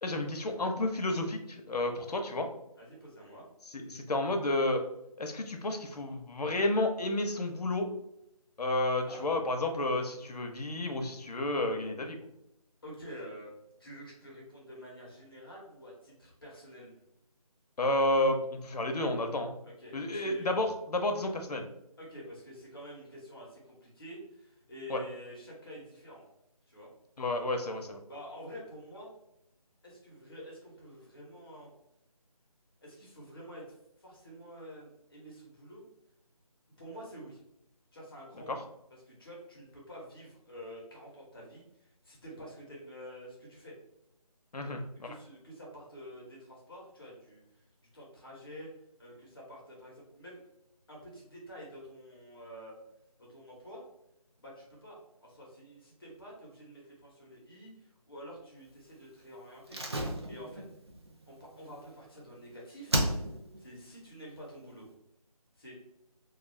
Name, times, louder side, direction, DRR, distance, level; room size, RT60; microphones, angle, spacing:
voice 1, 0.0-2.5 3.7-4.8 5.2-7.9 8.6-12.2 17.8-19.5 19.9-21.7 24.9-25.0 27.2-28.0 38.5-38.6 44.5-45.1, left 1 dB, 90° left, 4 dB, 0.6 m, -31 dB
voice 2, 2.8-3.4 9.1-9.3 12.8-13.5 13.8-16.9 19.6-20.5 22.0-26.3 26.7-26.9 28.1-29.1 29.8-31.7 32.8-35.9 36.8-37.4 37.9-38.6 39.1-43.7 44.6-47.7 47.9-48.7 49.0-50.4 50.9-52.7 53.2-53.8 54.4-59.8 60.2-60.6 61.3-63.0 63.6-64.9 65.6-65.7, equal, 40° left, -4 dB, 0.8 m, -48 dB
Slam, 59.7-62.4 62.9-63.6 63.9-64.0, right 1 dB, 45° right, 0.4 m, -34 dB
2.3 x 2.3 x 3.1 m, 0.83 s
figure-of-eight pair, 170°, 20 cm